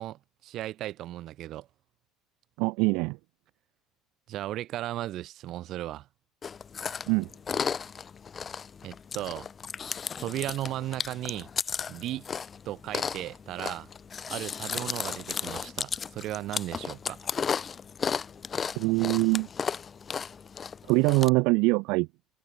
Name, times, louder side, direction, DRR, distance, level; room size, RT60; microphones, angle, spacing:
voice 1, 0.0-1.7 4.3-6.1 8.8-9.5 10.2-11.5 11.9-12.3 12.7-13.9 14.3-17.2, right 14 dB, 55° right, 3.6 m, -36 dB
voice 2, 2.6-3.2 7.1-7.3 18.7-19.5 20.9-22.1, right 27 dB, 80° right, 1.2 m, -23 dB
Chewing mastication, 6.4-21.3, left 6 dB, 30° left, 5.2 m, -35 dB
cardioid pair, 115°, 0 cm